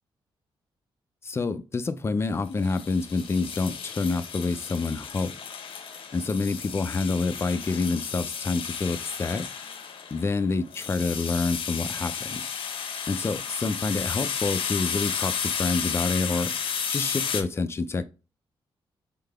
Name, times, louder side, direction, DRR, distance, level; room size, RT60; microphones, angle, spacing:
voice 1, 1.2-5.3 6.1-9.5 10.1-12.4 13.1-16.5 16.9-18.0, left 3 dB, 30° left, 0.4 m, -27 dB
sound 1, 2.6-17.4, left 7 dB, 70° left, 0.7 m, -33 dB
3.8 x 3.7 x 3.4 m
cardioid pair, 110°, 9 cm